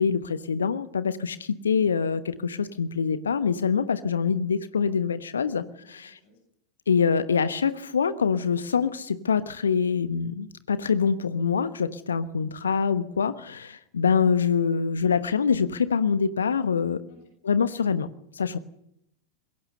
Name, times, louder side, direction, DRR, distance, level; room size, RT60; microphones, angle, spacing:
voice 1, 0.0-6.2 6.9-17.0 17.4-18.6, left 6 dB, 70° left, 13 dB, 1.1 m, -25 dB
voice 2, 5.4-6.4 17.1-17.2, left 2 dB, 50° left, 4 dB, 7.7 m, -60 dB
27.0 x 22.0 x 6.8 m, 0.77 s
figure-of-eight pair, 90°, 0 cm